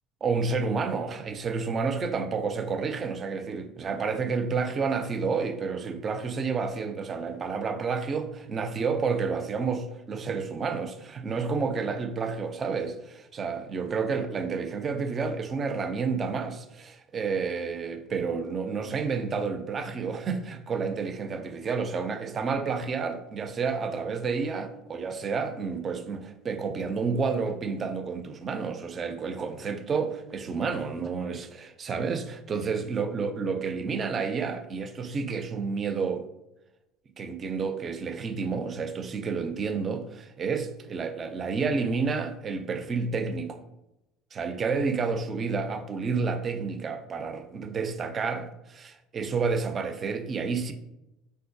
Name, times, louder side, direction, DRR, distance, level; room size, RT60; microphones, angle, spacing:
voice 1, 0.2-36.2 37.2-43.6 44.3-50.7, right 5 dB, 30° right, 0.3 m, -30 dB
3.6 x 2.2 x 2.6 m
cardioid pair, 120°, 0 cm